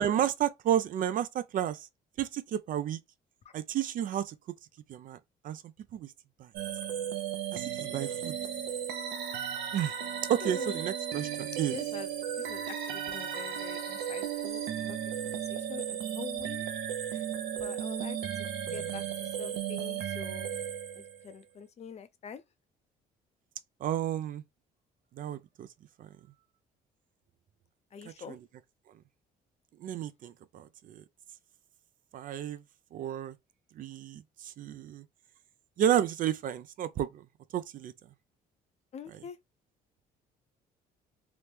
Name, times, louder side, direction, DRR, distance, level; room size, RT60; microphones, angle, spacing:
voice 1, 0.0-1.9 2.2-3.0 3.5-4.3 4.9-5.2 5.4-5.6 5.9-6.1 7.5-8.4 9.7-9.9 10.3-11.8 23.8-24.4 25.2-25.7 26.0-26.1 28.3-28.4 29.8-31.0 32.1-32.6 32.9-33.3 33.8-35.0 35.8-37.2 37.5-37.9, right 10 dB, 55° right, 0.4 m, -31 dB
sound 1, 6.5-21.3, right 9 dB, 90° right, 0.8 m, -35 dB
voice 2, 10.4-10.8 11.7-12.1 12.4-16.6 17.1-17.3 17.6-20.6 20.9-22.4 27.9-28.4 38.9-39.4, left 7 dB, 40° left, 0.5 m, -45 dB
3.0 x 2.1 x 3.2 m
cardioid pair, 110°, 17 cm